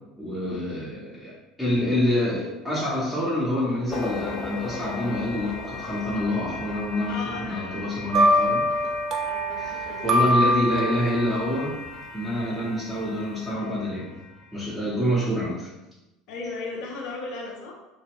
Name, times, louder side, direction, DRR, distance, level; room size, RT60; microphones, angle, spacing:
voice 1, 0.2-8.7 9.6-11.8 12.1-14.2 14.5-15.7, left 1 dB, 5° right, -10 dB, 0.8 m, -27 dB
sound 1, 3.9-15.0, left 3 dB, 25° left, 0.9 m, -38 dB
voice 2, 7.1-7.8 9.2-10.3 16.3-17.7, left 3 dB, 60° left, -1 dB, 0.6 m, -36 dB
sound 2, 8.1-11.4, equal, 45° right, 0.4 m, -23 dB
2.2 x 2.0 x 3.5 m, 1.0 s
figure-of-eight pair, 70°, 0 cm